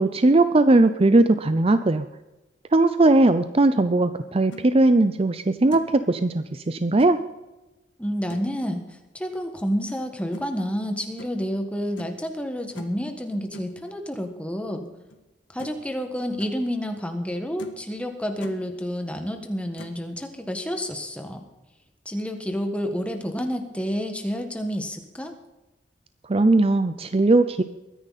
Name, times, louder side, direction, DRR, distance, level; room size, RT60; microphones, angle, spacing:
voice 1, 0.0-2.1 2.7-7.2 26.3-27.6, right 2 dB, 30° right, 11 dB, 0.5 m, -19 dB
sound 1, 4.2-4.7 5.2-5.3 5.7-6.0 7.0-7.2 8.3-8.6 10.3-10.5 11.2-11.4 12.0-12.2 12.7-13.0 13.5-13.7 15.1-15.2 15.6-15.9 16.2-16.5 17.1-17.2 17.6-17.9 18.2-18.6 19.8-20.0, left 1 dB, 85° left, 1.7 m, -42 dB
voice 2, 8.0-8.8 9.1-14.8 15.5-21.4 22.0-25.4, equal, 5° left, 5 dB, 1.6 m, -29 dB
22.5 x 10.0 x 4.2 m, 1.0 s
head